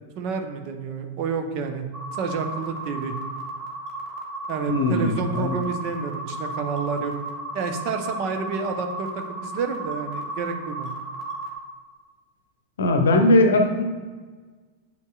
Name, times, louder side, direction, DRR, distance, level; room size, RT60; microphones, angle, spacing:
voice 1, 0.2-1.8 2.2-3.1 4.5-7.1 7.5-9.1 9.4-10.9, right 5 dB, 45° right, 5 dB, 0.7 m, -29 dB
sound 1, 1.9-11.6, right 2 dB, 25° right, 1.3 m, -34 dB
voice 2, 4.7-5.6 12.8-13.8, left 2 dB, 65° left, 5 dB, 0.7 m, -19 dB
7.9 x 5.4 x 2.4 m, 1.4 s
figure-of-eight pair, 90°, 0 cm